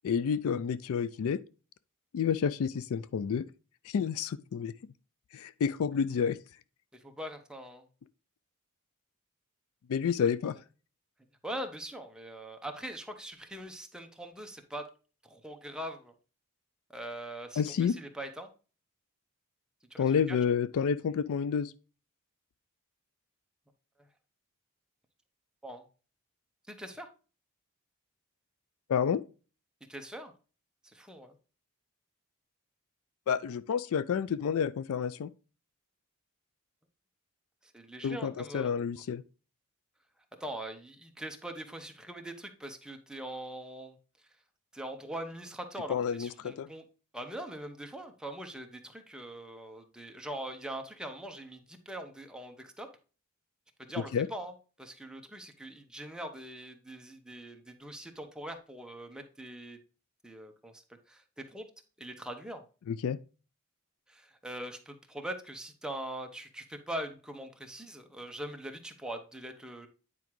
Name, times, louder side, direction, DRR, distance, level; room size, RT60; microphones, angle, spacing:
voice 1, 0.0-1.4 2.1-3.5 3.8-4.9 5.3-6.4 9.9-10.6 17.6-17.9 20.0-21.7 28.9-29.2 33.3-35.3 38.0-39.2 45.9-46.7 54.1-54.3 62.9-63.2, left 7 dB, 70° left, 0.4 m, -29 dB
voice 2, 6.9-7.8 11.4-14.9 15.2-16.1 16.9-18.5 19.9-20.4 25.6-25.8 26.7-27.1 29.9-30.3 30.8-31.3 37.6-38.7 40.4-44.0 44.7-46.8 47.1-52.9 53.9-59.8 60.2-61.7 62.0-62.6 64.1-69.9, right 1 dB, 5° right, 0.9 m, -42 dB
9.2 x 4.8 x 3.0 m
head